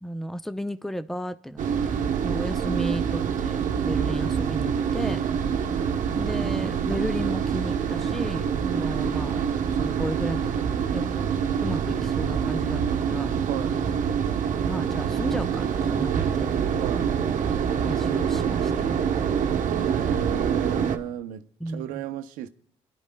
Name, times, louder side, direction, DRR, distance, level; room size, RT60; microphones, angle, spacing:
voice 1, 0.0-2.0 2.2-3.6 3.8-5.2 6.1-9.4 9.7-11.3 11.6-13.3 14.6-16.5 17.9-18.9 21.6-22.0, equal, ahead, 0.7 m, -34 dB
sound 1, 1.6-21.0, right 7 dB, 65° right, 1.0 m, -26 dB
voice 2, 13.5-13.8 16.8-17.1 19.6-22.5, right 12 dB, 85° right, 0.7 m, -34 dB
25.5 x 12.0 x 2.3 m
supercardioid pair, 60°, 14 cm